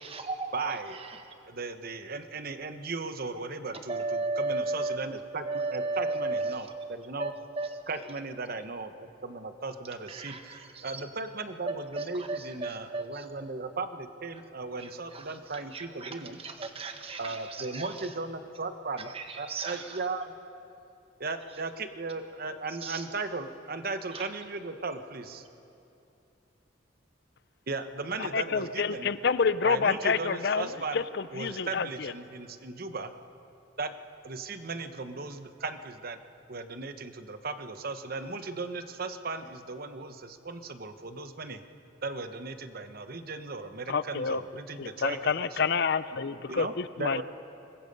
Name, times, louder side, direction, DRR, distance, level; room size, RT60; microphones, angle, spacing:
voice 1, 0.0-0.5 0.9-1.3 3.9-5.0 5.4-6.7 7.2-7.7 10.1-11.0 11.6-13.2 14.8-18.1 19.0-20.0 22.7-23.1 24.1-24.3, right 3 dB, 30° right, 5 dB, 1.5 m, -35 dB
voice 2, 0.5-1.0 1.5-4.0 4.4-7.3 7.9-16.4 17.2-19.1 19.4-20.3 21.2-25.4 27.7-29.1 29.6-31.0 31.3-33.1 33.8-33.9 34.2-36.2 36.5-41.6 42.0-45.7 46.5-47.2, right 3 dB, 50° right, 9 dB, 1.0 m, -37 dB
voice 3, 28.2-32.1 43.9-44.4 44.8-47.2, left 5 dB, 60° left, 15 dB, 0.6 m, -28 dB
25.0 x 21.0 x 5.4 m, 2.8 s
head